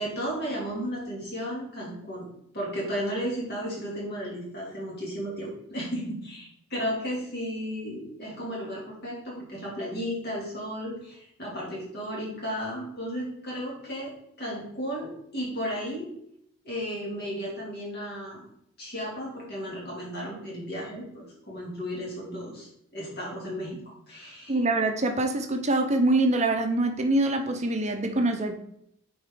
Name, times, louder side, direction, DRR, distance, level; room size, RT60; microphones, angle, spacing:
voice 1, 0.0-16.1 16.6-18.5 18.8-23.8 24.1-24.6, equal, 50° left, -3 dB, 2.6 m, -34 dB
voice 2, 24.5-28.6, right 2 dB, 30° right, 5 dB, 0.7 m, -24 dB
8.2 x 4.4 x 3.7 m, 0.73 s
head